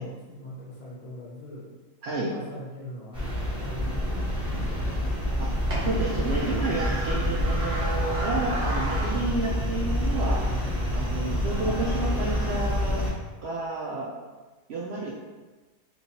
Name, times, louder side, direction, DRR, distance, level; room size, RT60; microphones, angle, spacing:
voice 1, 0.0-1.7 2.1-3.2 3.6-4.6, left 1 dB, 80° left, -5 dB, 1.2 m, -41 dB
sound 1, 3.1-13.1, equal, 5° right, 0.8 m, -27 dB
sound 2, 5.2-10.5, right 1 dB, 60° right, 0.9 m, -36 dB
voice 2, 5.8-10.6 10.9-13.0 13.4-14.1 14.7-15.1, right 3 dB, 75° right, -5 dB, 0.6 m, -30 dB
3.3 x 3.0 x 2.7 m, 1.2 s
omnidirectional pair, 1.6 m